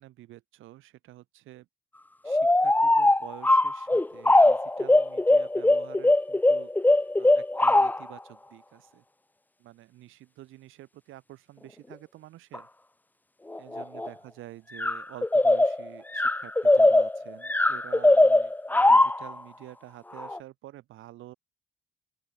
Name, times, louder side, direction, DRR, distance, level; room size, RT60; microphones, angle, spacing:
voice 1, 0.0-1.7 2.2-6.9 7.2-9.0 9.6-12.7 13.6-21.3, right 15 dB, 90° right, 7.1 m, -48 dB
sound 1, 2.3-8.1 12.5-12.6 13.5-14.1 14.8-19.3 20.2-20.4, left 2 dB, 10° left, 0.7 m, -21 dB
open air
cardioid pair, 90°, 20 cm